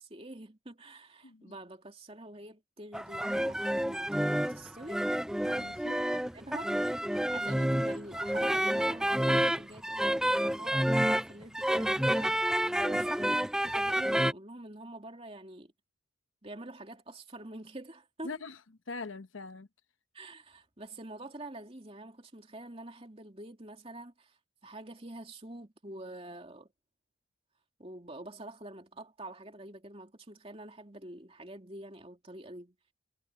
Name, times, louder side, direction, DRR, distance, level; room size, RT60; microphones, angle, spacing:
voice 1, 0.0-5.0 6.1-15.7 16.4-18.3 20.1-24.4 24.6-26.7 27.8-32.7, right 1 dB, 30° right, 2.9 m, -46 dB
voice 2, 1.2-1.5 5.4-6.1 12.6-13.1 18.2-18.6 18.9-19.7, left 3 dB, 80° left, 1.0 m, -43 dB
sound 1, 2.9-14.3, equal, 5° right, 0.4 m, -29 dB
head